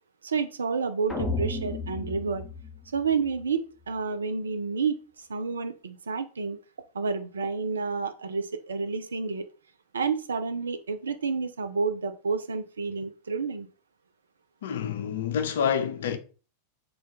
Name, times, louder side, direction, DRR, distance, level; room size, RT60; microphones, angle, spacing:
voice 1, 0.2-2.5 2.9-5.0 5.3-6.6 6.9-9.5 9.9-13.7, right 5 dB, 70° right, 0.4 m, -30 dB
sound 1, 1.1-3.4, left 2 dB, 10° left, 0.7 m, -33 dB
voice 2, 14.6-16.2, left 7 dB, 60° left, 0.5 m, -28 dB
3.2 x 2.3 x 4.0 m
figure-of-eight pair, 90°, 0 cm